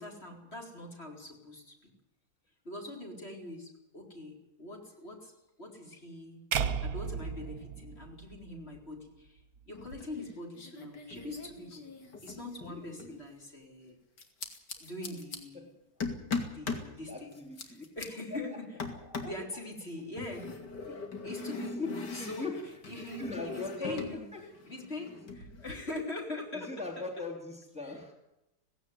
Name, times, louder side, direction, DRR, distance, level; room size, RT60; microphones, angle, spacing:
voice 1, 0.0-1.9 2.6-5.3 5.6-6.5 6.8-11.9 12.2-14.0 14.8-15.7 16.5-17.3 17.7-18.8 19.2-20.5 21.2-22.5 22.9-24.3 24.7-27.1 27.8-28.0, left 2 dB, 35° left, 1 dB, 4.6 m, -43 dB
sound 1, 6.5-8.8, right 7 dB, 60° right, 1.5 m, -34 dB
sound 2, 9.7-10.3 10.6-13.2 14.2-15.4 16.0-16.9 17.3-18.1 18.8-19.4 20.2-24.2 24.4-25.7, left 4 dB, 85° left, 3.1 m, -40 dB
voice 2, 12.7-13.2 15.1-15.2 15.5-15.7 17.0-17.8 19.0-19.3 20.8-22.6 23.0-24.4 26.5-28.1, left 3 dB, 5° right, 0 dB, 3.2 m, -41 dB
18.0 x 16.5 x 9.5 m, 0.88 s
omnidirectional pair, 1.8 m